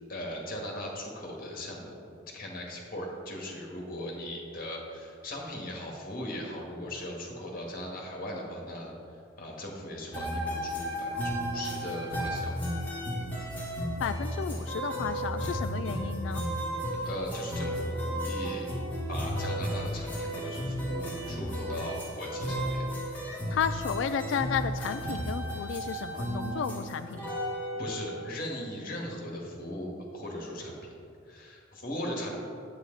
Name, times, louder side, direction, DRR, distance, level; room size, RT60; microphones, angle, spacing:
voice 1, 0.1-2.0 2.3-8.9 9.4-12.6 17.0-18.7 19.1-22.9 27.7-30.9 31.3-32.4, left 1 dB, 45° left, -1 dB, 1.8 m, -38 dB
sound 1, 10.1-28.2, equal, 10° left, 2.0 m, -33 dB
voice 2, 14.0-16.4 23.5-27.2, left 7 dB, 65° left, 9 dB, 0.3 m, -33 dB
9.7 x 8.4 x 4.0 m, 2.5 s
head